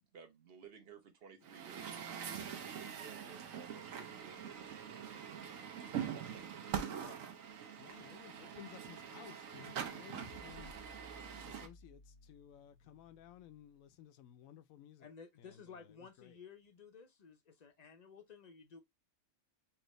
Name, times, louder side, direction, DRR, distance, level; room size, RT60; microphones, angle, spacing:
voice 1, 0.1-2.0 2.3-4.7, right 7 dB, 50° right, 1.1 m, -56 dB
Truck, 1.4-11.7, right 8 dB, 80° right, 1.1 m, -44 dB
voice 2, 6.8-7.2 15.0-18.8, left 6 dB, 45° left, 0.5 m, -55 dB
voice 3, 7.8-10.7 11.5-15.1 15.4-16.4, left 11 dB, 85° left, 1.0 m, -57 dB
sound 1, 10.2-13.6, equal, 20° right, 0.7 m, -58 dB
4.6 x 2.6 x 3.1 m
omnidirectional pair, 1.4 m